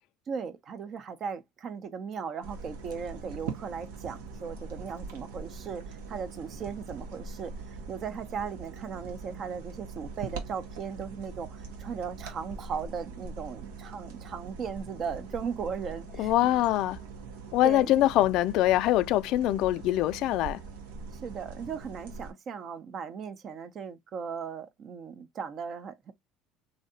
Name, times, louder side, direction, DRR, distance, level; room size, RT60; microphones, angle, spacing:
voice 1, 0.3-16.3 17.6-18.1 21.2-26.1, right 6 dB, 45° right, 0.7 m, -37 dB
sound 1, 2.4-22.3, right 4 dB, 90° right, 1.0 m, -42 dB
voice 2, 16.2-17.0 17.5-20.6, left 14 dB, 65° left, 0.3 m, -24 dB
3.2 x 2.7 x 2.7 m
supercardioid pair, 90°, 0 cm